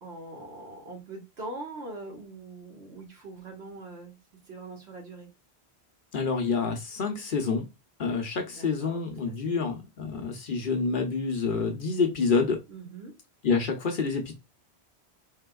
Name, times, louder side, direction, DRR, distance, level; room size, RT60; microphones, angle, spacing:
voice 1, 0.0-4.1 4.5-5.3 8.4-9.0 9.4-9.7 12.7-13.1, right 2 dB, 75° right, 0 dB, 1.7 m, -42 dB
voice 2, 6.1-7.7 8.0-12.6 13.4-14.3, left 4 dB, 55° left, 4 dB, 0.8 m, -27 dB
4.2 x 3.7 x 2.3 m, 0.23 s
omnidirectional pair, 1.1 m